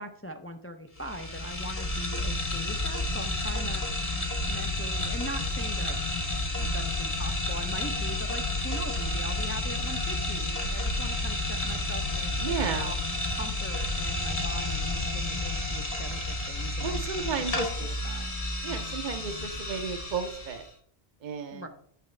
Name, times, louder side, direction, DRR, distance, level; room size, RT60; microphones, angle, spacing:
voice 1, 0.0-3.8 4.5-6.0 6.6-13.0 13.4-18.3 21.5-21.7, equal, 20° left, 6 dB, 0.3 m, -41 dB
sound 1, 1.0-20.7, left 2 dB, 40° left, 1.0 m, -31 dB
voice 2, 12.4-12.9 16.8-17.7 18.6-20.6 21.2-21.7, right 5 dB, 55° right, 4 dB, 0.7 m, -33 dB
8.5 x 6.2 x 3.2 m, 0.62 s
omnidirectional pair, 1.0 m